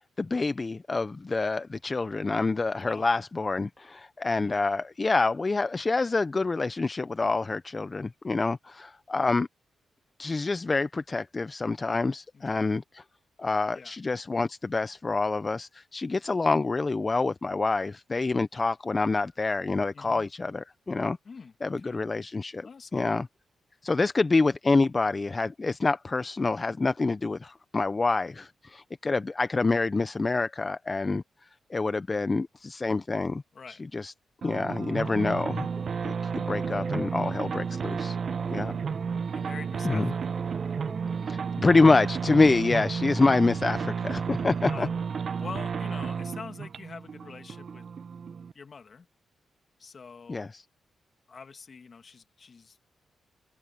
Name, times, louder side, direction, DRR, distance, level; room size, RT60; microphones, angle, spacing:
voice 1, 0.2-9.5 10.2-13.0 13.4-21.2 21.6-23.3 23.8-31.2 31.7-33.4 33.7-34.1 34.4-35.7 36.0-38.2 38.5-38.8 39.8-40.1 41.2-44.9 50.3-50.6, left 3 dB, 35° left, 0.7 m, -27 dB
voice 2, 12.3-12.7 13.7-14.0 19.9-20.2 21.2-22.0 22.6-23.2 33.5-33.9 38.4-38.7 39.3-40.4 44.6-45.1 45.4-47.8 48.5-49.1 49.8-50.5 51.3-52.8, left 5 dB, 50° left, 2.5 m, -45 dB
sound 1, 34.4-48.5, right 6 dB, 60° right, 0.7 m, -32 dB
sound 2, 35.1-42.9, right 2 dB, 25° right, 1.2 m, -44 dB
supercardioid pair, 55°, 0 cm